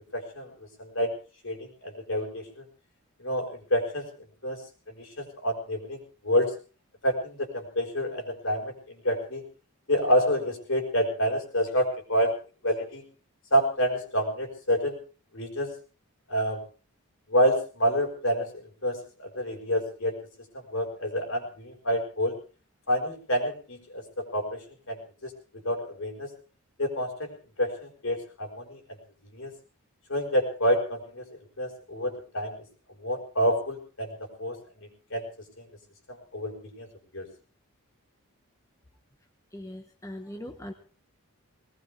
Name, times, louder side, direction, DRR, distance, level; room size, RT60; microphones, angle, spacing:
voice 1, 0.1-1.1 1.4-2.6 3.2-4.1 4.4-4.6 4.9-6.0 6.2-6.5 7.0-9.4 9.9-12.3 12.6-13.0 13.5-15.0 15.3-15.7 16.3-16.6 17.3-20.2 20.5-22.4 22.9-24.6 24.9-25.3 25.6-26.3 26.8-28.8 29.3-29.5 30.1-31.2 31.6-32.5 33.0-35.2 35.6-35.7 36.1-36.9 37.1-37.3, equal, 60° left, 3 dB, 5.1 m, -28 dB
voice 2, 39.5-40.7, left 1 dB, 15° left, 3 dB, 1.4 m, -40 dB
20.5 x 19.5 x 3.5 m, 0.38 s
head